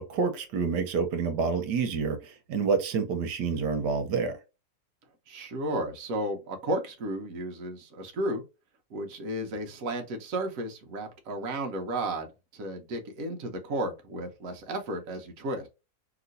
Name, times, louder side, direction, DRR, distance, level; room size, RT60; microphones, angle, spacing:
voice 1, 0.0-4.4, right 5 dB, 85° right, 1.4 m, -28 dB
voice 2, 5.3-8.4 8.9-12.3 12.5-15.7, right 1 dB, 60° right, 1.1 m, -33 dB
3.0 x 2.9 x 2.5 m
omnidirectional pair, 1.7 m